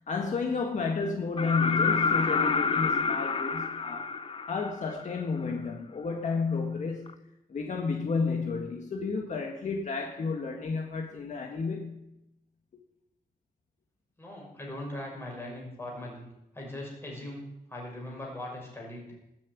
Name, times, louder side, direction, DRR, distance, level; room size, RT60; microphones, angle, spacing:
voice 1, 0.1-4.1 4.5-7.2 7.5-12.0, left 4 dB, 50° left, 2 dB, 1.8 m, -31 dB
sound 1, 1.4-5.2 7.1-7.2, left 5 dB, 35° left, 0.7 m, -28 dB
voice 2, 14.2-16.3 16.5-19.1, left 1 dB, 15° left, -2 dB, 6.0 m, -40 dB
19.0 x 7.7 x 9.5 m, 0.87 s
wide cardioid pair, 175°, 15 cm